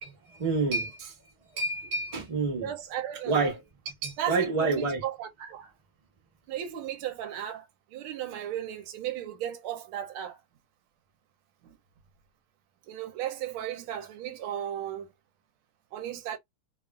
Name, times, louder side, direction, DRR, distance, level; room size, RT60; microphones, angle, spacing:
voice 1, 0.0-1.1 1.6-2.7 3.3-3.6 4.0-5.0, right 3 dB, 25° right, 0.7 m, -28 dB
voice 2, 2.6-3.4 4.2-5.7 6.5-10.4 11.6-11.8 12.9-15.1 15.9-16.4, right 11 dB, 80° right, 1.5 m, -35 dB
3.5 x 2.3 x 2.3 m
omnidirectional pair, 2.4 m